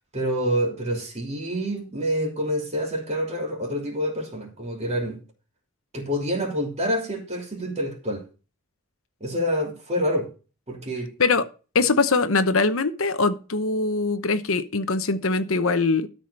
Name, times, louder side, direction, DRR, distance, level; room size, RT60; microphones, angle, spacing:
voice 1, 0.1-5.2 5.9-8.2 9.2-10.3 10.7-11.1, equal, 30° right, 3.0 m, -27 dB
voice 2, 11.7-16.1, left 3 dB, 65° left, 1.0 m, -22 dB
13.0 x 5.1 x 6.6 m
head